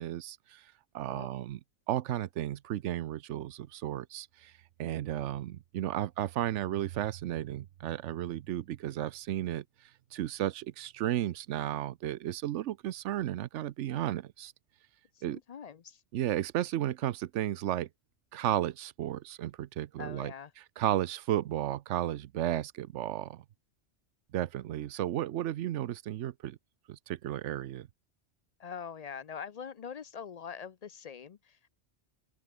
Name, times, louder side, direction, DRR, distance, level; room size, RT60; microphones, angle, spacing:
voice 1, 0.0-1.6 1.9-4.5 4.8-14.5 15.2-15.4 16.1-17.9 18.3-20.3 20.8-23.4 24.3-26.6 26.9-27.9, right 12 dB, 85° right, 1.0 m, -34 dB
voice 2, 15.1-16.0 20.0-20.5 28.6-31.7, left 7 dB, 50° left, 0.5 m, -43 dB
open air
omnidirectional pair, 1.2 m